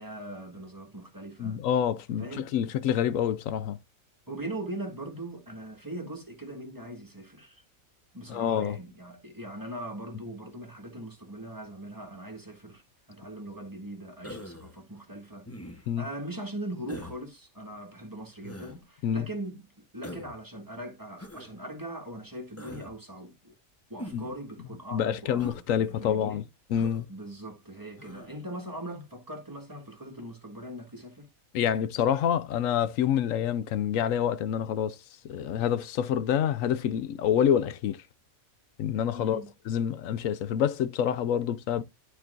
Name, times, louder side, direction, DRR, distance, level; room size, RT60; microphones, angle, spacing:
voice 1, 0.0-1.6 2.1-2.5 4.3-7.6 8.1-12.8 13.1-23.5 23.9-26.4 27.1-31.3 39.1-39.5, right 1 dB, 15° right, 1.5 m, -40 dB
voice 2, 1.4-3.8 8.3-8.8 15.9-16.1 19.0-19.3 24.1-24.2 24.9-26.4 26.7-27.1 31.5-35.0 35.2-38.0 38.8-39.4 39.7-41.8, left 9 dB, 75° left, 0.9 m, -27 dB
Human voice, 14.2-14.7 15.5-16.0 16.9-17.2 18.4-18.8 20.0-20.4 21.2-21.5 22.6-22.9 24.0-24.3 25.4-25.6 26.7-27.0 28.0-28.3, left 1 dB, 10° left, 1.0 m, -42 dB
11.5 x 4.6 x 2.5 m
omnidirectional pair, 1.5 m